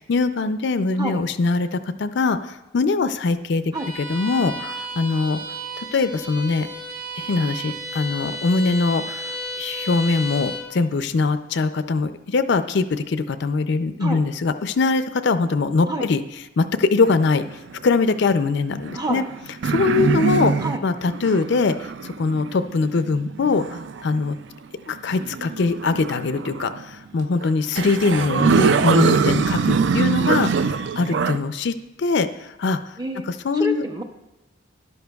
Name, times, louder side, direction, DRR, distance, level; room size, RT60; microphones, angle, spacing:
voice 1, 0.0-3.6 4.0-5.4 5.8-6.7 7.2-16.2 16.6-17.4 17.8-19.2 19.6-20.5 20.8-24.4 24.9-33.0 33.4-33.8, left 4 dB, 60° left, 11 dB, 0.4 m, -22 dB
Bowed string instrument, 3.7-10.7, equal, 90° right, 1.3 m, -33 dB
sound 1, 17.0-18.0 18.8-24.2 25.1-26.8 27.4-27.5 27.8-31.4, right 5 dB, 60° right, 0.4 m, -23 dB
voice 2, 18.9-19.3 20.6-20.8 33.0-33.3 33.5-34.0, right 1 dB, 20° right, 5 dB, 0.6 m, -28 dB
13.0 x 10.5 x 2.3 m, 1.0 s
head